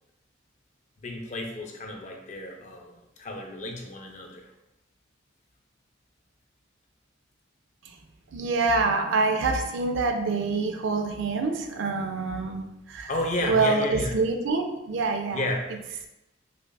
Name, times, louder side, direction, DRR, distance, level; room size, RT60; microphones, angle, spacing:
voice 1, 1.0-4.5 13.1-14.2 15.3-15.7, left 1 dB, 35° left, 2 dB, 0.5 m, -32 dB
voice 2, 8.3-13.1 13.5-15.4, right 3 dB, 65° right, 4 dB, 0.4 m, -26 dB
5.0 x 2.4 x 2.2 m, 0.92 s
head